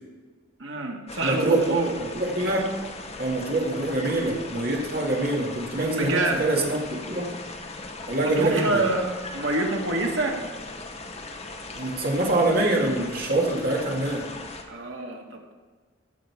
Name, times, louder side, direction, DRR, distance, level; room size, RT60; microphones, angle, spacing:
voice 1, 0.6-2.0 5.9-6.5 8.2-9.1 9.3-10.4 14.7-15.5, right 2 dB, 75° right, 0 dB, 1.9 m, -27 dB
sound 1, 1.1-14.6, left 3 dB, 35° left, 1.0 m, -39 dB
voice 2, 1.2-1.6 2.1-2.7 3.2-7.3 8.1-8.8 11.7-14.3, right 2 dB, 50° right, -1 dB, 2.2 m, -25 dB
15.5 x 6.7 x 4.7 m, 1.4 s
head